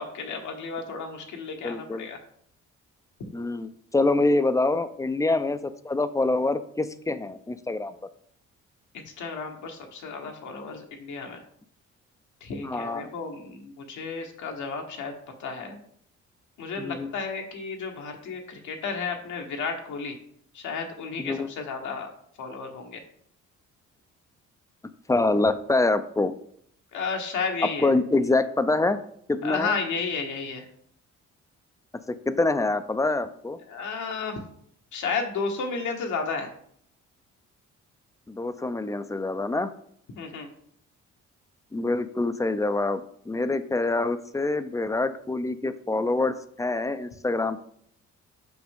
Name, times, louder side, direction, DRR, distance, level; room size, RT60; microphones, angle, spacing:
voice 1, 0.0-2.2 5.3-5.4 9.0-11.4 12.4-15.1 15.4-15.8 16.6-20.2 20.5-22.1 22.4-23.0 26.9-27.9 29.4-30.7 33.7-34.4 34.9-36.5 40.2-40.5, left 4 dB, 75° left, 3 dB, 1.2 m, -32 dB
voice 2, 1.6-2.1 3.3-7.9 12.6-13.1 16.8-17.1 21.2-21.5 25.1-26.3 27.8-29.0 29.3-29.7 32.1-33.6 38.3-39.7 41.7-43.0 43.3-47.6, left 2 dB, 10° left, 12 dB, 0.4 m, -25 dB
6.0 x 5.3 x 3.6 m, 0.64 s
cardioid pair, 90°, 30 cm